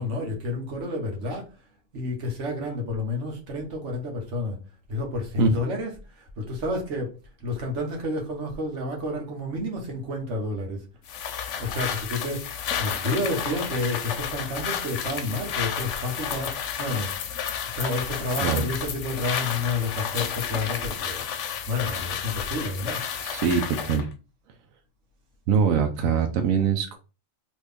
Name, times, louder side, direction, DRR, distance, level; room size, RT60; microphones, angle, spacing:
voice 1, 0.0-1.5 1.9-4.6 4.9-7.1 7.4-10.8 11.6-17.1 17.7-21.2 21.7-23.0, left 2 dB, 65° right, 1.4 m, -30 dB
sound 1, 11.1-24.1, left 8 dB, 70° left, 0.9 m, -31 dB
voice 2, 23.2-24.1 25.5-27.0, right 6 dB, 85° right, 1.0 m, -23 dB
3.1 x 2.6 x 3.4 m
omnidirectional pair, 1.4 m